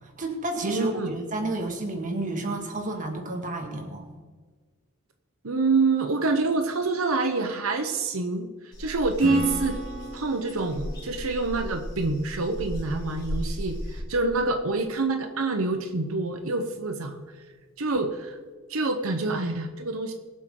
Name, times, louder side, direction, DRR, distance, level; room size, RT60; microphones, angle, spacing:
voice 1, 0.0-4.1, right 2 dB, 40° right, 2 dB, 2.1 m, -31 dB
voice 2, 0.6-1.1 5.4-8.5 8.8-9.8 10.1-17.2 17.8-18.4 18.7-20.1, right 3 dB, 85° right, 5 dB, 1.0 m, -26 dB
sound 1, 8.7-14.0, equal, 20° left, 3.6 m, -35 dB
Acoustic guitar / Strum, 9.2-12.8, left 1 dB, 45° left, 3.9 m, -37 dB
23.0 x 8.1 x 3.9 m, 1.4 s
head